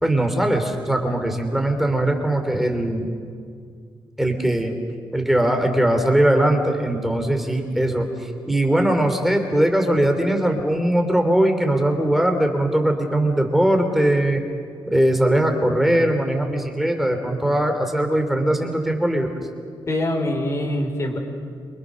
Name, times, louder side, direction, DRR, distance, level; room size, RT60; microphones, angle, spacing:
voice 1, 0.0-3.1 4.2-4.7 5.1-14.4 14.9-19.3, right 1 dB, ahead, 4 dB, 3.4 m, -20 dB
voice 2, 19.9-21.2, left 1 dB, 35° left, 4 dB, 4.5 m, -24 dB
28.0 x 25.5 x 6.6 m, 2.2 s
wide cardioid pair, 135°, 9 cm